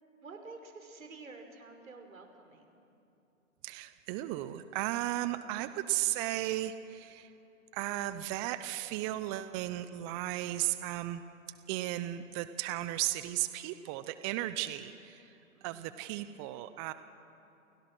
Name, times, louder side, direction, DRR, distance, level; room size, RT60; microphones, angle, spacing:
voice 1, 0.2-2.8 15.5-16.1, right 3 dB, 80° right, 4 dB, 5.9 m, -50 dB
voice 2, 3.6-7.3 7.7-11.2 11.7-16.9, right 15 dB, 20° right, 12 dB, 0.8 m, -35 dB
29.5 x 29.0 x 6.3 m, 2.9 s
hypercardioid pair, 130°, 40 cm